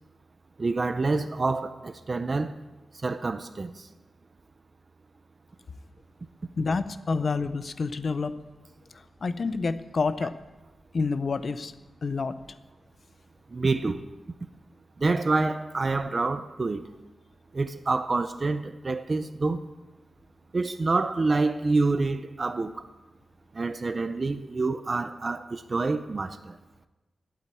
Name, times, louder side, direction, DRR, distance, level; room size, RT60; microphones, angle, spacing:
voice 1, 0.6-2.5 3.0-3.9 13.5-14.0 15.0-16.9 17.5-19.7 20.5-22.8 23.5-26.6, right 3 dB, 30° right, 0.5 m, -27 dB
voice 2, 6.6-8.3 9.2-10.3 10.9-11.7 12.0-12.4, left 4 dB, 45° left, 0.6 m, -28 dB
12.0 x 8.8 x 8.2 m
wide cardioid pair, 160°, 0 cm